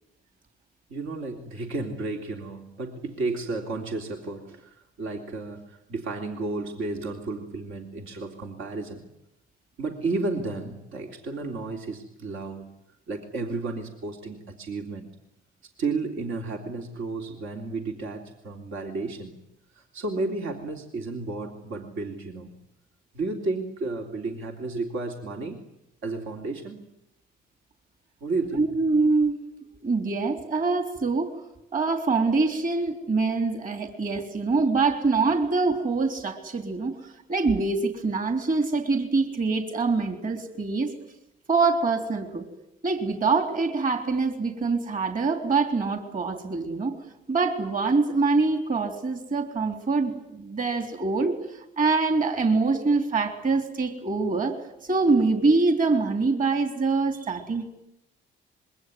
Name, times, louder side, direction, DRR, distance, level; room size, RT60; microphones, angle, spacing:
voice 1, 0.9-9.0 9.8-12.7 13.1-15.1 15.6-19.3 19.7-22.5 23.1-25.6 26.0-26.8 28.2-28.7, right 3 dB, 80° right, 2 dB, 3.3 m, -32 dB
voice 2, 28.6-29.4 29.8-31.4 31.7-40.9 41.5-42.5 42.8-46.9 47.3-54.6 54.8-57.7, right 3 dB, 45° right, 5 dB, 3.7 m, -24 dB
26.0 x 23.0 x 9.5 m, 0.83 s
cardioid pair, 90°, 20 cm